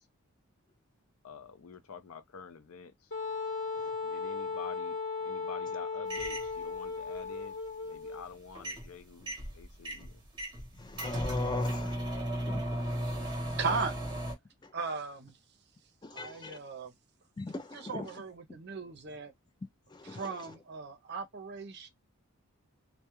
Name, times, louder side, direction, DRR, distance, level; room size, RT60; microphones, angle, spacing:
voice 1, 1.2-2.9 4.1-5.0 5.2-7.5 7.9-10.1, left 6 dB, 85° left, 0.5 m, -48 dB
Wind instrument woodwind instrument, 3.1-8.2, left 4 dB, 55° left, 1.1 m, -36 dB
sound 1, 6.1-6.5 8.5-8.9 9.2-14.3, equal, 20° right, 0.8 m, -35 dB
voice 2, 11.0-11.9 12.5-12.6 16.2-16.6 17.4-17.7 17.9-18.1 20.1-20.2, left 3 dB, 20° left, 0.3 m, -37 dB
voice 3, 12.9-14.0 14.7-15.3 16.1-16.9 17.7-19.3 20.0-21.9, right 4 dB, 50° right, 0.5 m, -37 dB
2.3 x 2.1 x 2.9 m
head